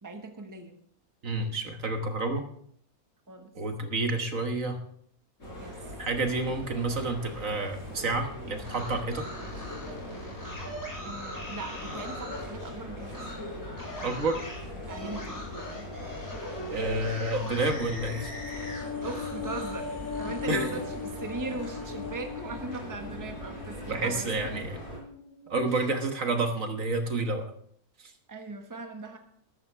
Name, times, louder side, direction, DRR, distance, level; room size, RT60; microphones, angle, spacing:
voice 1, 0.0-0.8 3.3-3.5 5.6-5.7 11.0-13.3 14.8-15.9 19.0-24.8 25.6-25.9 28.3-29.2, right 3 dB, 15° right, 4 dB, 1.2 m, -39 dB
voice 2, 1.2-2.4 3.6-4.8 6.0-9.3 14.0-14.4 16.7-18.3 20.5-20.7 23.9-24.8 25.5-27.5, right 2 dB, 60° right, 5 dB, 1.7 m, -29 dB
sound 1, 5.4-25.0, left 1 dB, 55° left, 6.3 m, -41 dB
sound 2, 8.5-12.5 13.1-13.3 13.8-19.8 20.1-21.8, left 1 dB, 10° left, 5.0 m, -41 dB
sound 3, 17.7-26.1 26.4-26.6, left 5 dB, 85° left, 2.5 m, -40 dB
14.0 x 13.0 x 3.3 m, 0.65 s
omnidirectional pair, 1.6 m